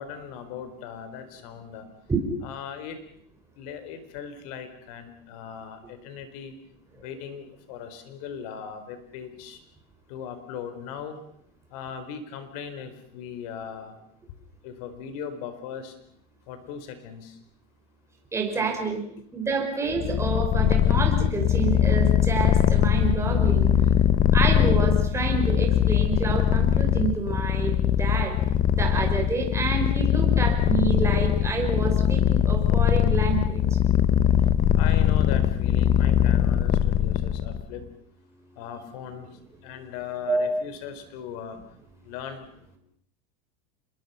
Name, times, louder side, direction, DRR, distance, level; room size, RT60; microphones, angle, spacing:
voice 1, 0.0-1.9 2.4-3.0 3.6-6.5 7.0-9.6 10.1-11.2 11.7-14.0 14.6-15.9 16.5-17.3 18.6-18.8 19.6-19.7 34.7-37.8 38.6-39.3 39.6-41.6 42.0-42.4, left 7 dB, 65° left, 9 dB, 4.5 m, -38 dB
voice 2, 18.3-19.0 19.3-23.7 24.3-28.3 28.7-33.6 40.3-40.5, right 4 dB, 15° right, 1 dB, 5.2 m, -28 dB
Purr, 19.9-37.6, left 10 dB, 35° left, 0.9 m, -21 dB
27.0 x 22.0 x 5.8 m, 0.66 s
supercardioid pair, 135°, 20 cm